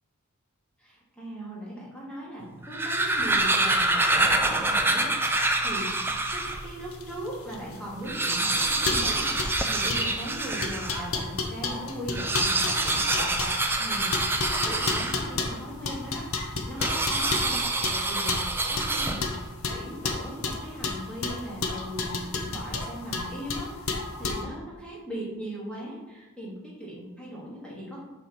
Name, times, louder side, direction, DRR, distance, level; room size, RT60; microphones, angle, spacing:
voice 1, 0.8-5.1 5.4-18.4 18.7-19.2 19.7-28.0, equal, 5° left, -6 dB, 2.8 m, -39 dB
sound 1, 2.5-6.7 7.2-7.3 7.5-7.6 8.0-11.1 12.0-15.5 16.8-19.5, right 2 dB, 10° right, 0.7 m, -26 dB
sound 2, 6.0-24.4, left 3 dB, 70° left, 1.0 m, -32 dB
7.1 x 5.2 x 6.2 m, 1.1 s
head